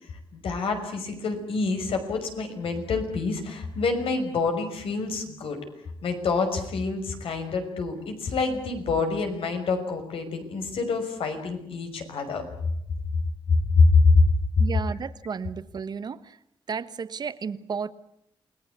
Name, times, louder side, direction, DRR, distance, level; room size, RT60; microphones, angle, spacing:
voice 1, 0.3-5.6 6.0-12.5 13.5-14.2, left 4 dB, 70° left, 6 dB, 5.9 m, -25 dB
voice 2, 14.6-16.4 16.7-17.9, right 6 dB, 45° right, 13 dB, 1.2 m, -33 dB
29.0 x 20.5 x 8.3 m, 0.74 s
wide cardioid pair, 135°, 10 cm